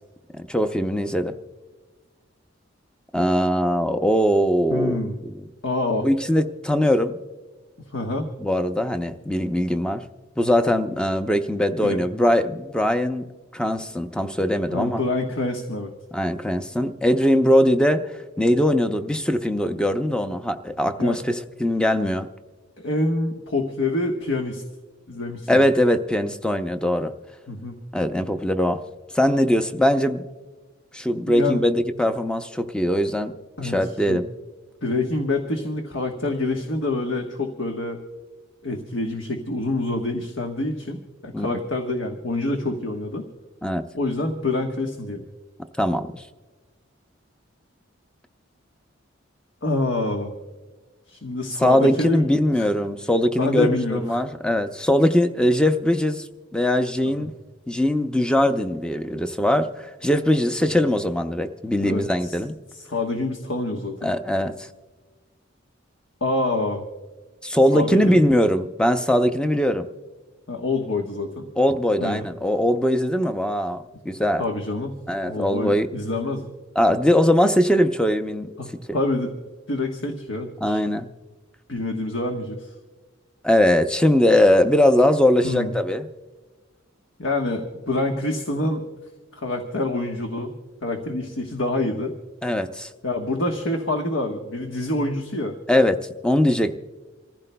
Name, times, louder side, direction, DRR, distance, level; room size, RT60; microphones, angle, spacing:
voice 1, 0.5-1.4 3.1-5.1 6.0-7.2 8.4-10.0 10.4-13.3 13.5-15.0 16.1-18.0 18.4-22.3 25.5-27.1 27.9-28.8 29.1-30.2 30.9-33.3 33.6-34.2 41.3-41.6 43.6-43.9 45.8-46.2 51.6-56.2 56.5-57.3 57.7-62.5 64.0-64.7 67.4-69.9 71.6-73.8 74.0-74.4 75.1-75.9 76.8-78.5 80.6-81.1 83.4-86.1 92.4-92.9 95.7-96.7, left 1 dB, 5° left, 8 dB, 0.6 m, -21 dB
voice 2, 4.7-5.2 5.6-6.1 7.9-8.3 11.8-12.0 14.7-15.9 21.0-21.2 22.8-24.6 25.1-25.7 27.5-27.8 31.3-31.6 33.6-33.8 34.1-34.2 34.8-38.0 38.6-43.3 43.9-45.2 49.6-50.3 51.1-52.3 52.6-52.7 53.4-54.2 61.8-62.4 62.7-64.1 66.2-66.8 67.7-68.2 70.5-71.5 72.0-72.2 74.4-75.0 75.2-76.4 78.6-79.3 79.7-80.8 81.7-82.7 85.4-85.7 87.2-88.9 89.3-92.1 93.0-95.5, left 2 dB, 70° left, 2 dB, 1.2 m, -26 dB
27.0 x 15.0 x 2.2 m, 1.3 s
head